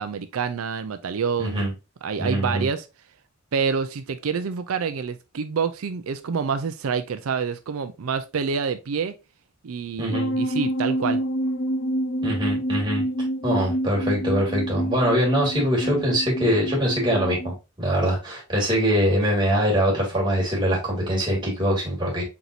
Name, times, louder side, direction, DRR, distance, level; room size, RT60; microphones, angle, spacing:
voice 1, 0.0-1.7 2.0-2.8 3.5-9.1 9.6-11.2, right 6 dB, 90° right, 0.5 m, -27 dB
voice 2, 1.4-1.7 2.2-2.7 10.0-10.3 12.2-13.0 13.4-22.2, equal, 20° right, 2.2 m, -23 dB
sound 1, 10.1-17.5, right 1 dB, 60° left, 0.6 m, -27 dB
4.6 x 4.0 x 2.6 m
head